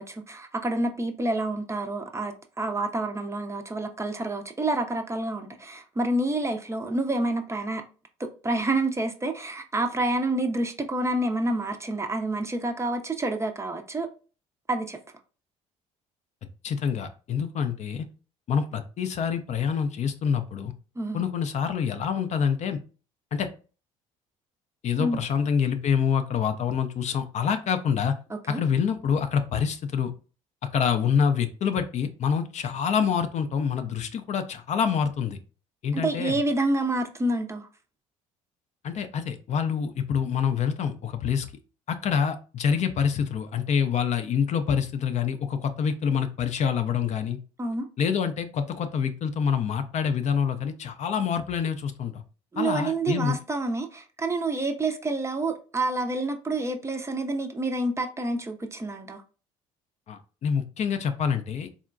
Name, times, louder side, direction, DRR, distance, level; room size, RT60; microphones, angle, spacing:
voice 1, 0.0-7.8 8.2-14.1 14.7-15.0 21.0-21.2 25.0-25.2 28.3-28.6 35.9-37.7 47.6-47.9 52.5-59.2, right 2 dB, 15° right, 0.5 m, -28 dB
voice 2, 16.6-18.0 18.5-20.7 21.1-22.8 23.3-23.5 24.8-28.1 28.5-30.1 30.7-35.4 35.8-36.4 38.8-41.5 41.9-47.4 48.0-52.2 52.6-53.4 60.1-61.7, left 7 dB, 45° left, 0.4 m, -26 dB
3.6 x 2.1 x 2.4 m
hypercardioid pair, 55°, 17 cm